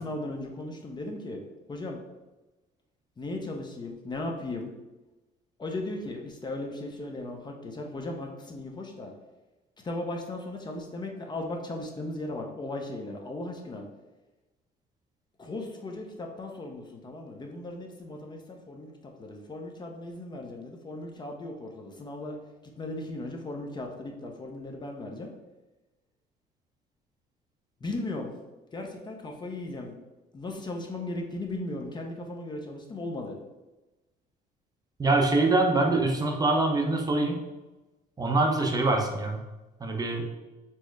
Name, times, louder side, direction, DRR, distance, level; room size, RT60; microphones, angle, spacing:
voice 1, 0.0-1.4 1.7-2.0 3.2-4.7 5.6-9.1 9.8-13.9 15.4-22.4 22.6-25.3 27.8-28.3 28.7-29.9 30.3-33.4, left 2 dB, 25° left, 1 dB, 0.6 m, -37 dB
voice 2, 35.0-37.4 38.2-39.4 39.8-40.2, right 2 dB, 20° right, 2 dB, 0.6 m, -24 dB
4.4 x 2.0 x 4.5 m, 1.1 s
cardioid pair, 110°, 17 cm